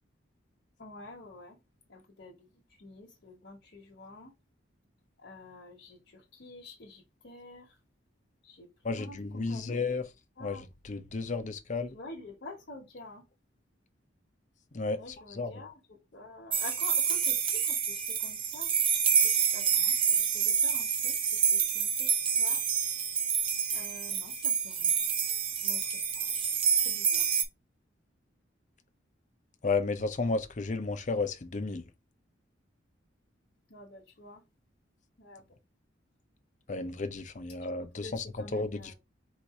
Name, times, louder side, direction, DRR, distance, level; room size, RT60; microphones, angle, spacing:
voice 1, 0.8-1.6 1.9-4.3 5.2-7.7 8.4-9.9 10.4-10.6 11.9-13.2 15.0-22.6 23.7-25.0 25.6-25.8 26.1-26.3 26.8-27.3 33.7-34.4 35.2-35.4 38.0-38.9, left 2 dB, 60° left, 1.1 m, -48 dB
voice 2, 8.8-10.0 10.4-10.6 10.8-11.9 14.7-15.0 15.4-15.5 29.6-31.8 36.7-38.2 38.5-38.9, left 3 dB, 40° left, 0.6 m, -32 dB
sound 1, 16.5-27.4, right 7 dB, 30° right, 0.6 m, -28 dB
4.1 x 2.6 x 4.6 m
head